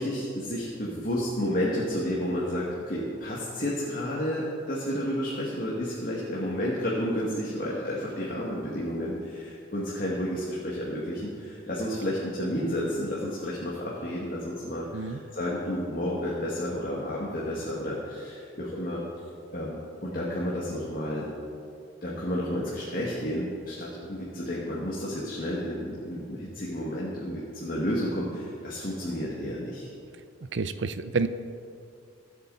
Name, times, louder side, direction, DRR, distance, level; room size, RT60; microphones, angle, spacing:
voice 1, 0.0-19.0 19.5-21.3 22.0-29.9, equal, 45° left, -5 dB, 2.0 m, -31 dB
voice 2, 30.5-31.3, right 4 dB, 60° right, 11 dB, 0.6 m, -28 dB
23.0 x 8.4 x 4.1 m, 2.4 s
head